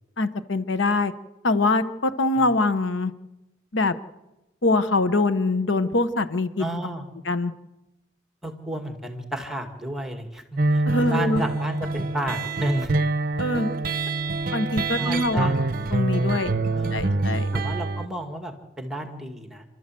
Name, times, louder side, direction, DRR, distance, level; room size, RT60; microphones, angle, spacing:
voice 1, 0.2-1.1 1.4-3.1 3.7-3.9 4.6-6.6 7.3-7.5 10.9-11.4 13.4-13.7 14.5-15.5 15.9-16.5 16.9-17.5, left 2 dB, 75° left, 12 dB, 1.0 m, -23 dB
voice 2, 6.6-7.0 8.4-12.9 13.9-14.0 15.0-15.7 16.7-17.3 17.5-19.6, right 1 dB, ahead, 5 dB, 2.1 m, -32 dB
sound 1, 10.6-18.1, right 2 dB, 50° right, 0.8 m, -25 dB
29.5 x 13.0 x 7.6 m, 1.0 s
head